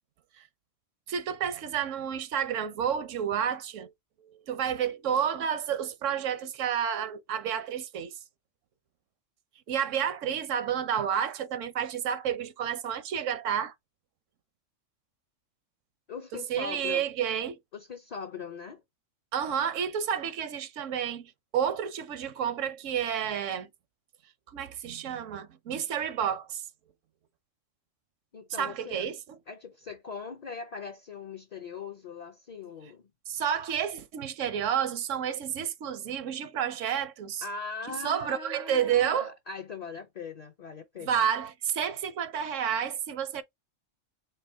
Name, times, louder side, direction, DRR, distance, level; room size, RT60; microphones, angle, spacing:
voice 1, 1.1-3.9 4.2-8.1 9.7-13.7 16.3-17.6 19.3-21.2 21.5-23.7 24.5-26.6 28.6-29.4 33.3-37.4 37.9-39.3 41.0-43.4, right 8 dB, 80° right, 1.0 m, -30 dB
voice 2, 16.1-17.1 17.7-18.8 28.3-29.1 29.5-33.0 37.4-41.2, left 5 dB, 50° left, 0.5 m, -40 dB
4.6 x 2.8 x 3.3 m
omnidirectional pair, 1.3 m